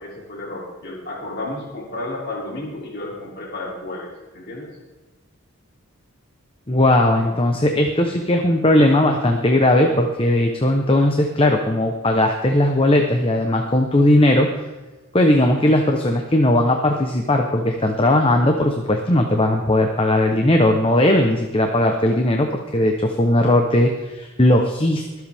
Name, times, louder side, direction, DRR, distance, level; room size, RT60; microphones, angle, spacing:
voice 1, 0.0-4.7, left 2 dB, 50° left, -3 dB, 2.9 m, -32 dB
voice 2, 6.7-14.5 15.1-25.0, left 1 dB, 25° left, 3 dB, 0.9 m, -18 dB
24.0 x 7.9 x 3.5 m, 1.2 s
head